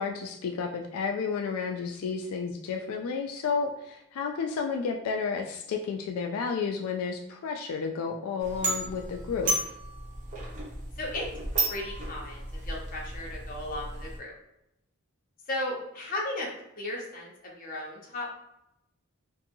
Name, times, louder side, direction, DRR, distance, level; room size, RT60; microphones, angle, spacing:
voice 1, 0.0-9.5, left 5 dB, 85° left, 5 dB, 0.3 m, -31 dB
sound 1, 8.4-14.2, right 2 dB, 35° right, 0.7 m, -33 dB
voice 2, 11.0-11.3 11.7-14.3 15.5-16.5 16.8-17.3 17.6-18.3, left 1 dB, 40° left, -2 dB, 0.7 m, -35 dB
2.7 x 2.6 x 2.6 m, 0.83 s
head